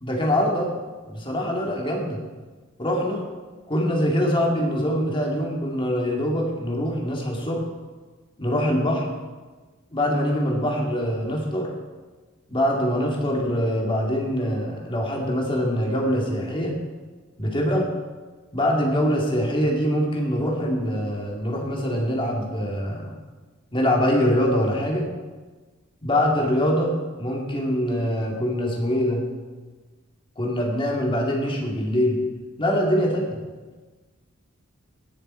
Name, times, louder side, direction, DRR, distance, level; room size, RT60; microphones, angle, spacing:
voice 1, 0.0-0.7 1.1-2.2 2.8-3.2 3.7-7.6 8.4-9.1 9.9-11.7 12.5-16.7 17.4-17.9 18.5-23.1 23.7-25.1 26.0-29.2 30.4-32.2 32.6-33.4, equal, 25° left, -1 dB, 2.2 m, -24 dB
17.5 x 6.9 x 4.4 m, 1.3 s
head